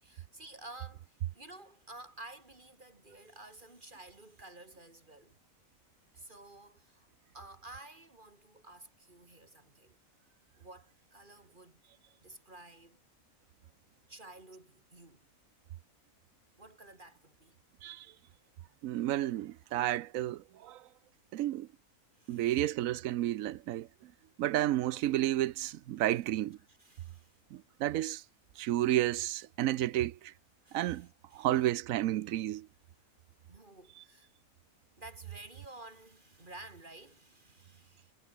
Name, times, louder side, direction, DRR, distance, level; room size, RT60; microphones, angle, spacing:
voice 1, 0.0-5.4 6.1-7.1 7.3-10.0 10.6-11.8 12.2-13.0 14.1-15.3 16.6-17.6 19.9-20.0 22.2-22.6 26.7-27.4 30.6-31.5 33.5-34.3 35.0-38.1, right 2 dB, 35° right, 3.9 m, -52 dB
voice 2, 18.8-20.8 21.3-21.7 22.3-24.1 24.4-26.6 27.5-28.2 28.6-30.3 30.7-31.1 31.3-32.7, right 14 dB, 75° right, 1.0 m, -31 dB
omnidirectional pair, 1.5 m